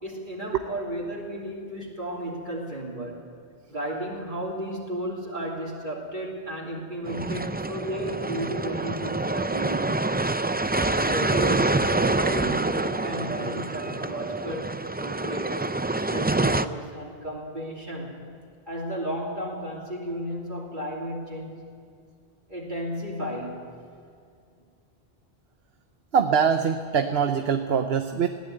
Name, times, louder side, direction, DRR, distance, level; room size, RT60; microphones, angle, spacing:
voice 1, 0.0-3.2 3.7-10.1 10.7-15.6 16.1-18.3 18.7-21.6 22.5-23.7, right 1 dB, 50° right, -3 dB, 3.1 m, -34 dB
sound 1, 7.1-16.7, right 2 dB, 15° right, 0.3 m, -26 dB
voice 2, 26.1-28.3, right 7 dB, 70° right, 7 dB, 1.1 m, -23 dB
21.0 x 16.0 x 9.1 m, 2.3 s
omnidirectional pair, 1.1 m